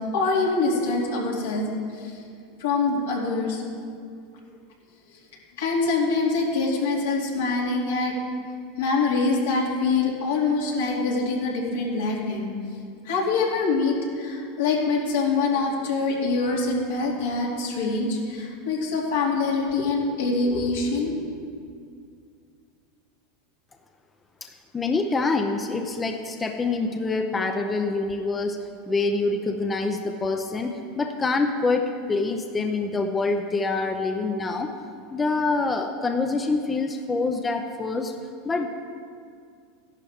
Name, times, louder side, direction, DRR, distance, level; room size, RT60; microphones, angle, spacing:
voice 1, 0.0-1.7 2.0-2.2 2.6-3.6 5.6-8.2 8.8-12.5 13.0-21.3, left 3 dB, 80° left, -3 dB, 2.7 m, -24 dB
voice 2, 24.4-34.7 35.1-38.1 38.4-38.7, left 3 dB, 20° left, 5 dB, 0.7 m, -26 dB
13.5 x 11.5 x 3.6 m, 2.3 s
hypercardioid pair, 105°, 0 cm